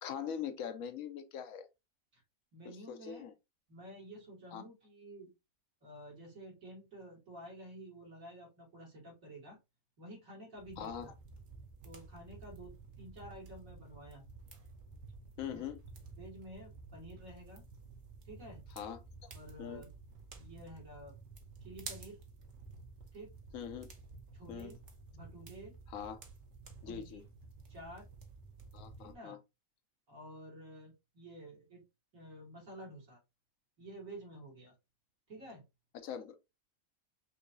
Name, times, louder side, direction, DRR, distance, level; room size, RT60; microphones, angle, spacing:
voice 1, 0.0-1.7 2.6-3.3 4.5-4.6 10.8-11.1 15.4-15.8 18.8-19.3 19.6-19.8 23.5-23.9 24.5-24.7 25.9-26.2 26.8-27.2 28.7-29.4 35.9-36.4, left 8 dB, 75° left, 1.1 m, -42 dB
voice 2, 2.5-3.2 3.7-5.3 5.8-9.6 10.0-11.1 11.8-14.3 15.4-15.6 16.2-17.6 18.2-18.6 19.3-19.9 20.3-21.1 21.6-22.2 23.1-23.3 24.3-24.8 25.1-25.7 26.8-27.2 27.7-28.1 29.0-29.4 30.1-31.8 32.1-33.2 33.8-34.7 35.3-35.6, right 1 dB, 75° right, 2.8 m, -51 dB
sound 1, 10.6-29.2, right 4 dB, 60° right, 1.3 m, -52 dB
5.7 x 2.7 x 2.6 m
omnidirectional pair, 1.4 m